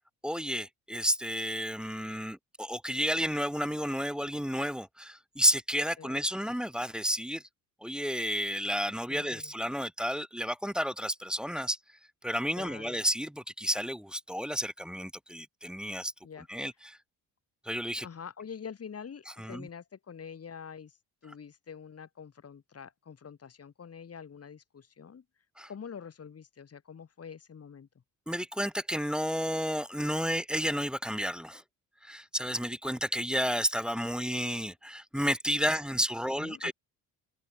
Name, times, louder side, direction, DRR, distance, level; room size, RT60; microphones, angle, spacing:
voice 1, 0.2-7.4 7.8-11.8 12.2-16.1 16.5-17.0 17.6-18.1 19.4-19.7 25.6-25.7 28.3-31.6 32.0-36.7, equal, ahead, 0.5 m, -31 dB
voice 2, 9.1-9.5 12.5-13.0 16.2-16.5 18.0-21.0 21.2-25.2 25.7-27.9 35.7-35.8 36.4-36.7, left 7 dB, 35° left, 3.6 m, -45 dB
cardioid pair, 95°, 40 cm